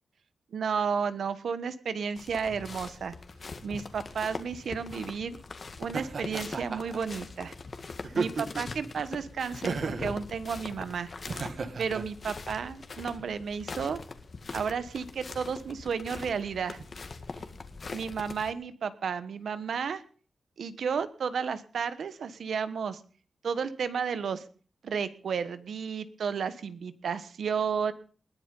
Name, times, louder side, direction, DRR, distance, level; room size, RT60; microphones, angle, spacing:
voice 1, 0.5-3.1 3.6-5.4 5.8-7.5 8.1-11.1 11.8-14.0 14.5-16.9 17.9-20.0 20.6-23.0 23.4-24.4 24.8-27.9, right 6 dB, 85° right, 13 dB, 1.3 m, -32 dB
sound 1, 2.2-18.5, left 4 dB, 50° left, 1.9 m, -42 dB
Laughter, 5.9-7.0 8.0-8.8 9.7-10.2 11.3-12.0, right 4 dB, 60° right, 1.7 m, -33 dB
20.5 x 10.5 x 5.4 m, 0.42 s
wide cardioid pair, 95°, 0 cm